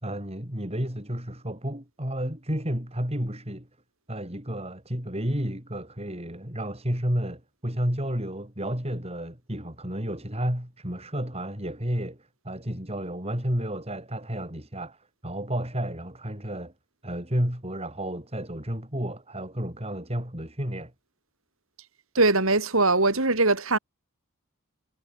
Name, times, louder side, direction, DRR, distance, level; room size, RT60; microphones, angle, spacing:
voice 1, 0.0-3.7 4.1-16.7 17.0-20.9, equal, 30° right, 6.6 m, -31 dB
voice 2, 22.1-23.8, right 2 dB, 65° right, 4.0 m, -21 dB
head